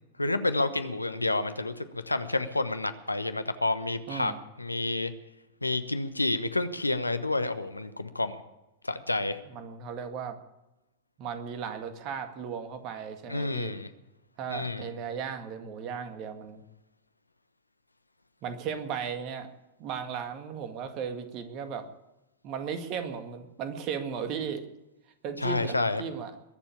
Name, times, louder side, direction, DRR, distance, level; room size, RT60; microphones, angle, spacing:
voice 1, 0.2-4.3 4.6-5.1 5.6-8.3 8.8-9.4 13.3-13.9 14.5-14.9 25.4-26.0, left 2 dB, 85° left, 11 dB, 1.0 m, -29 dB
voice 2, 4.1-4.4 9.5-10.4 11.2-13.7 14.4-16.6 18.4-19.5 19.8-21.9 22.4-24.7 25.2-26.3, right 7 dB, 40° right, 8 dB, 2.0 m, -36 dB
22.0 x 7.3 x 8.7 m, 0.97 s
figure-of-eight pair, 95°, 0 cm